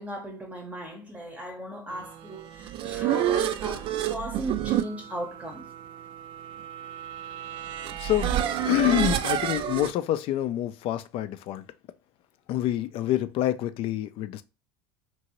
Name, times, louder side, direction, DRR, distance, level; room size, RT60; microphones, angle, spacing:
voice 1, 0.0-5.7, right 1 dB, 10° right, 0.7 m, -37 dB
sound 1, 2.4-9.9, right 11 dB, 50° right, 0.4 m, -29 dB
voice 2, 8.0-11.6 12.5-14.4, left 13 dB, 55° left, 0.4 m, -27 dB
2.8 x 2.6 x 3.0 m
hypercardioid pair, 90°, 12 cm